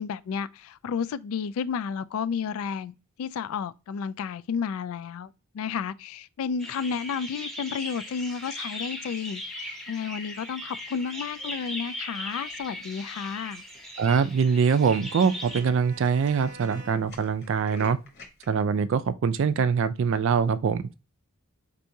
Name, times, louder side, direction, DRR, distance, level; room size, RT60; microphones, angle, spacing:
voice 1, 0.0-5.3 5.5-13.6, left 6 dB, 70° left, 0.3 m, -32 dB
sound 1, 6.6-15.6, left 1 dB, ahead, 0.8 m, -38 dB
Tools, 12.4-12.8 13.4-13.5 13.7-13.8 14.1-14.3 14.6-14.7 15.0-18.4, left 2 dB, 45° left, 1.2 m, -49 dB
voice 2, 14.0-18.0 18.5-20.9, right 6 dB, 60° right, 0.3 m, -23 dB
Bowed string instrument, 14.2-17.3, right 2 dB, 35° right, 0.8 m, -49 dB
4.5 x 2.6 x 2.7 m
head